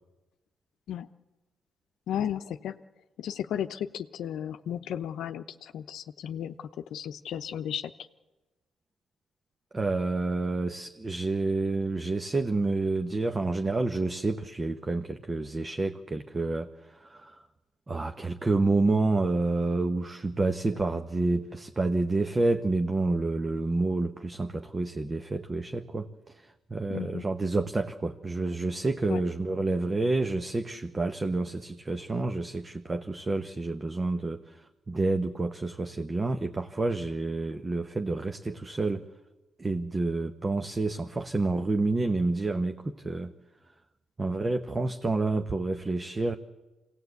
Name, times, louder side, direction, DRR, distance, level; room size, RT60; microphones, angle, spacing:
voice 1, 2.1-2.8 3.2-7.9 26.9-27.2 29.1-29.2, left 10 dB, 75° left, 8 dB, 0.7 m, -34 dB
voice 2, 9.7-17.4 17.9-39.0 39.6-43.3 44.2-46.3, right 3 dB, 25° right, 7 dB, 1.0 m, -29 dB
25.5 x 18.0 x 8.2 m, 1.1 s
cardioid pair, 90°, 0 cm